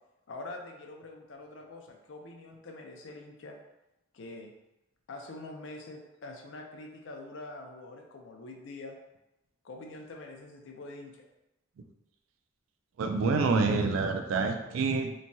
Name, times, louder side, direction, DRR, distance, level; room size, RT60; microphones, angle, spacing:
voice 1, 0.3-3.6 4.1-4.5 5.1-9.0 9.6-11.2, left 2 dB, 65° left, 2 dB, 0.4 m, -45 dB
voice 2, 13.0-15.1, right 4 dB, 80° right, 6 dB, 0.3 m, -27 dB
3.0 x 2.2 x 2.6 m, 0.93 s
head